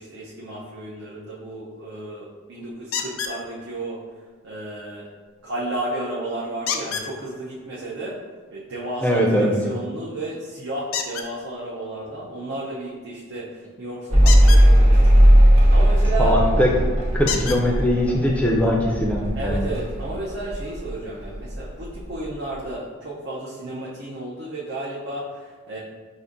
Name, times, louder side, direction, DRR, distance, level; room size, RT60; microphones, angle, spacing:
voice 1, 0.0-4.0 4.4-5.1 5.4-8.2 8.5-13.5 13.8-15.3 15.7-16.3 19.4-25.8, right 1 dB, 60° right, -6 dB, 0.5 m, -33 dB
sound 1, 2.9-3.4 6.7-7.1 10.9-11.3 14.2-14.6 16.3-16.4 17.3-17.6 18.6-18.7 19.2-19.3, left 7 dB, 75° left, 0.4 m, -27 dB
voice 2, 9.0-9.5 16.2-16.7 17.1-19.6, equal, 5° left, -1 dB, 0.4 m, -21 dB
Mechanical fan, 14.1-21.0 21.2-22.0, equal, 85° right, 0.9 m, -17 dB
5.1 x 2.5 x 2.5 m, 1.4 s
head